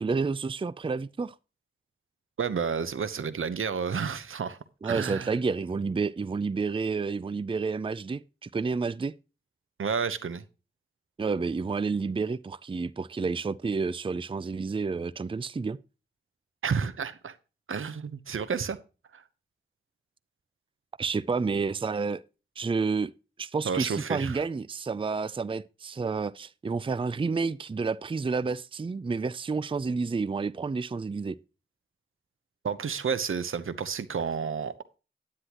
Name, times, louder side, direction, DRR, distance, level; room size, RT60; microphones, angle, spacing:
voice 1, 0.0-1.3 4.8-9.1 11.2-15.8 21.0-22.2 22.6-23.1 23.4-31.4, right 4 dB, 25° right, 0.4 m, -30 dB
voice 2, 2.4-4.6 4.8-5.3 9.8-10.4 16.6-17.4 17.7-18.8 19.1-19.2 23.6-24.4 32.6-34.7, right 6 dB, 85° right, 0.8 m, -30 dB
9.9 x 9.7 x 3.0 m
wide cardioid pair, 70°, 21 cm